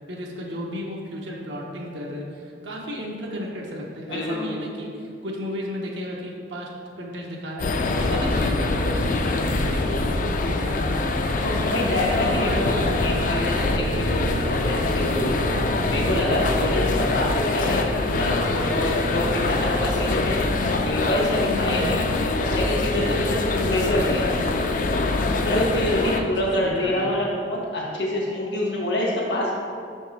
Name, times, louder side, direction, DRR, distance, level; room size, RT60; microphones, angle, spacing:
voice 1, 0.1-6.7 7.0-11.3 12.1-13.3 13.7-14.0 21.5-22.0 26.0-27.3, equal, 80° right, -2 dB, 0.8 m, -33 dB
voice 2, 4.1-4.5 11.4-15.5 15.9-20.4 20.8-22.0 22.4-24.3 25.4-29.6, left 1 dB, 70° left, -5 dB, 1.2 m, -26 dB
sound 1, 7.6-26.2, left 2 dB, 45° left, 0.4 m, -24 dB
Brass instrument, 12.9-20.0, right 2 dB, 25° right, 0.4 m, -36 dB
6.1 x 4.5 x 4.6 m, 2.3 s
head